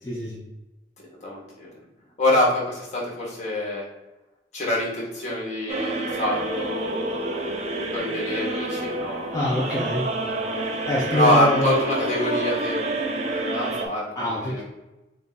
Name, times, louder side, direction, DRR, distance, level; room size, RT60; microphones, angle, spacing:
voice 1, 0.0-0.4 9.3-10.1 10.9-11.7 14.2-14.6, left 1 dB, 20° left, -6 dB, 0.6 m, -25 dB
voice 2, 1.2-1.7 2.2-3.8 4.5-7.2 7.9-9.3 11.1-14.6, left 1 dB, 40° left, -4 dB, 1.4 m, -25 dB
sound 1, 5.7-13.9, right 2 dB, 40° right, 0.6 m, -28 dB
3.5 x 2.9 x 4.0 m, 1.0 s
head